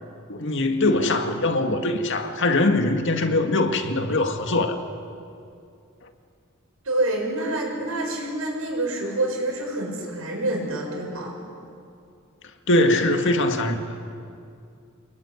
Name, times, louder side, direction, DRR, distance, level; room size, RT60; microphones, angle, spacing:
voice 1, 0.3-4.8 12.7-13.8, left 2 dB, 60° left, 2.1 m, -22 dB
voice 2, 6.8-11.3, right 1 dB, 75° right, 6.9 m, -27 dB
28.0 x 21.0 x 9.9 m
head